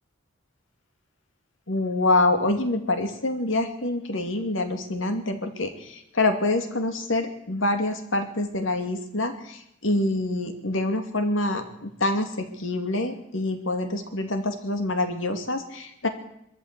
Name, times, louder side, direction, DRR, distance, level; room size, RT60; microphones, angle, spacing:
voice 1, 1.7-16.1, left 2 dB, 70° left, 6 dB, 2.7 m, -26 dB
23.0 x 14.0 x 8.4 m, 0.78 s
head